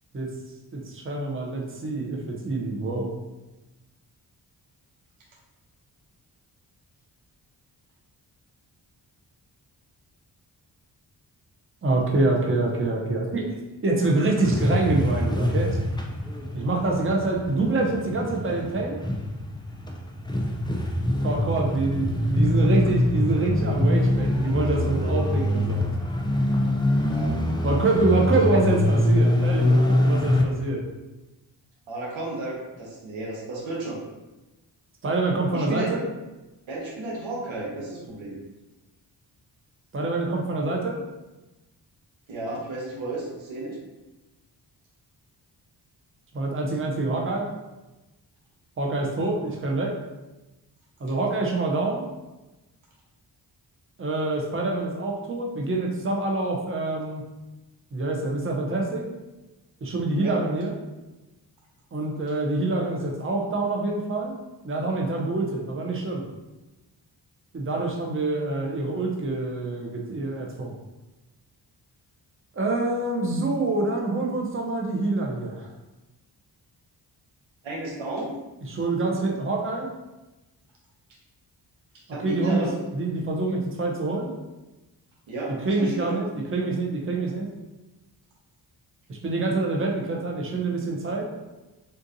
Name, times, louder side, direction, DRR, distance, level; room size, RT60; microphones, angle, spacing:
voice 1, 0.7-3.1 11.8-13.4 13.8-15.8 16.5-19.0 21.2-25.8 27.6-30.8 35.0-36.1 39.9-41.0 46.3-47.5 48.8-49.9 51.0-52.0 54.0-57.2 57.9-59.0 59.8-60.7 61.9-64.4 64.6-66.2 67.5-70.7 72.5-75.7 78.6-79.9 82.2-82.7 82.9-84.3 85.6-87.5 89.1-91.3, right 2 dB, 25° right, -1 dB, 0.8 m, -26 dB
sound 1, 14.0-30.4, left 1 dB, 10° left, 0.5 m, -24 dB
voice 2, 26.9-27.3 31.9-34.0 35.5-35.9 36.7-38.4 42.3-43.8 60.2-60.4 77.6-78.3 82.1-82.8 85.3-86.2, right 2 dB, 85° right, -2 dB, 0.9 m, -33 dB
3.8 x 2.5 x 2.7 m, 1.1 s
supercardioid pair, 45°, 46 cm